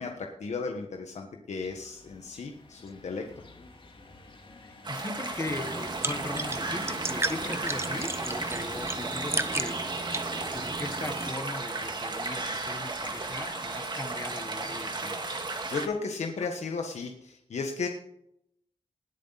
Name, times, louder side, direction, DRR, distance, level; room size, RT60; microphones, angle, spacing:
voice 1, 0.0-3.2 15.7-17.9, left 4 dB, 70° left, 2 dB, 1.4 m, -34 dB
sound 1, 1.6-13.6, left 3 dB, 45° left, 2.7 m, -49 dB
voice 2, 4.6-9.9 10.5-15.2, left 2 dB, 25° left, 10 dB, 1.3 m, -39 dB
sound 2, 4.8-15.9, right 3 dB, 40° right, 2.1 m, -34 dB
sound 3, 5.5-11.3, right 2 dB, 20° right, 1.0 m, -35 dB
20.0 x 8.2 x 4.1 m, 0.74 s
wide cardioid pair, 100°, 12 cm